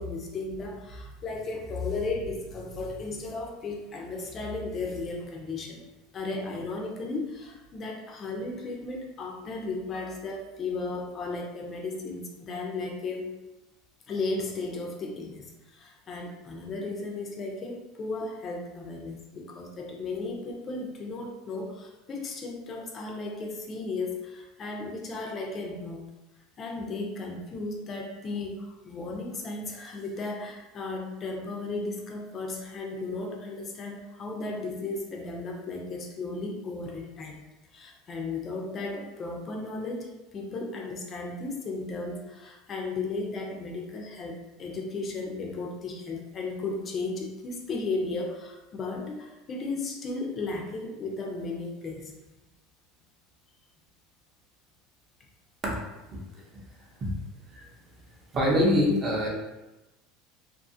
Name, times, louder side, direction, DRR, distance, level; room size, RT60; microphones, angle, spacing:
voice 1, 0.0-5.8 6.1-13.3 14.1-26.0 26.6-37.4 37.7-52.1, left 3 dB, 30° left, 0 dB, 0.5 m, -35 dB
voice 2, 58.3-59.3, left 1 dB, 25° right, -2 dB, 0.7 m, -23 dB
2.6 x 2.4 x 2.6 m, 1.0 s
supercardioid pair, 135°, 0 cm